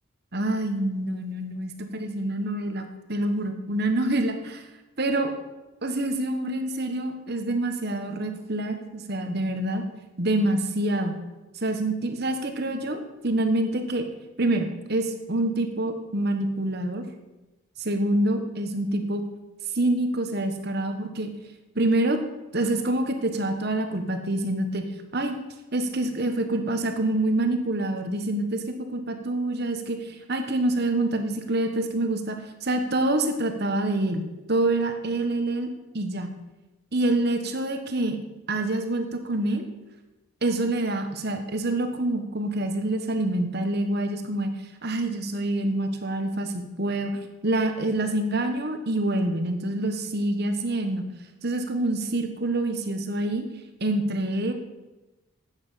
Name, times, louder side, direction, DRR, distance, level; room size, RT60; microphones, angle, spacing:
voice 1, 0.3-4.6 5.0-5.3 5.8-9.8 10.2-11.2 11.6-14.1 14.4-17.0 17.8-19.2 19.7-21.3 21.7-22.2 22.5-24.8 25.1-25.3 25.7-32.4 32.6-35.7 35.9-36.3 36.9-38.2 38.5-39.7 40.4-44.5 44.8-47.1 47.4-51.1 51.4-53.4 53.8-54.5, right 1 dB, 45° right, 6 dB, 1.3 m, -26 dB
12.5 x 8.9 x 5.7 m, 1.1 s
head